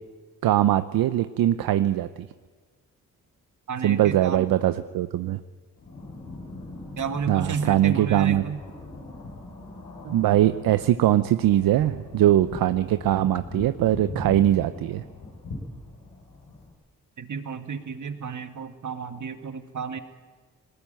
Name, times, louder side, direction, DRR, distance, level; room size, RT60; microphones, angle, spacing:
voice 1, 0.4-2.1 3.8-5.4 7.3-8.4 10.1-15.0, right 12 dB, 75° right, 12 dB, 0.7 m, -21 dB
voice 2, 3.7-4.5 7.0-8.6 17.2-20.0, right 6 dB, 55° right, 8 dB, 2.1 m, -32 dB
sound 1, 5.7-16.7, left 2 dB, 75° left, 7.1 m, -41 dB
20.5 x 19.0 x 9.2 m, 1.4 s
supercardioid pair, 50°, 35 cm